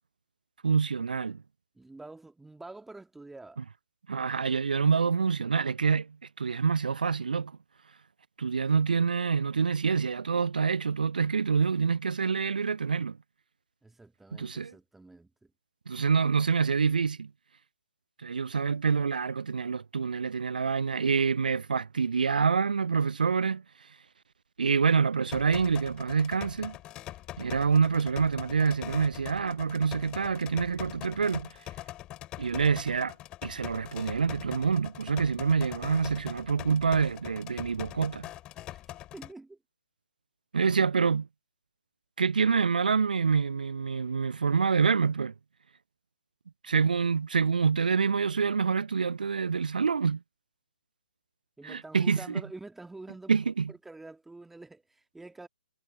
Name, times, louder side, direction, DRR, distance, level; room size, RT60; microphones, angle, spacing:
voice 1, 0.6-1.4 4.1-7.5 8.4-13.2 14.3-14.7 15.9-17.3 18.2-23.6 24.6-26.8 27.4-31.5 32.4-33.1 33.4-38.3 40.5-41.3 42.2-45.3 46.6-50.2 51.6-52.4 53.3-53.7, right 5 dB, 65° right, 0.4 m, -26 dB
voice 2, 1.8-3.7 8.7-8.8 13.8-15.5 38.5-38.8 39.1-39.6 51.6-53.3 53.7-55.5, right 2 dB, 5° right, 1.8 m, -47 dB
sound 1, 25.3-39.3, left 15 dB, 20° left, 2.5 m, -43 dB
figure-of-eight pair, 135°, 5 cm